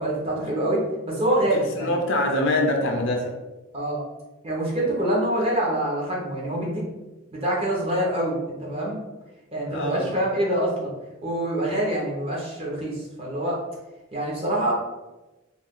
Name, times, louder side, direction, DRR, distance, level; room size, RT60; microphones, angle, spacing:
voice 1, 0.0-2.0 3.7-4.0 4.4-6.8 7.3-9.0 9.5-10.9 11.2-13.6 14.1-14.7, right 1 dB, 25° right, -4 dB, 0.7 m, -25 dB
voice 2, 1.7-3.4 9.7-10.2, left 1 dB, 55° left, 1 dB, 0.5 m, -24 dB
2.4 x 2.3 x 3.5 m, 1.1 s
head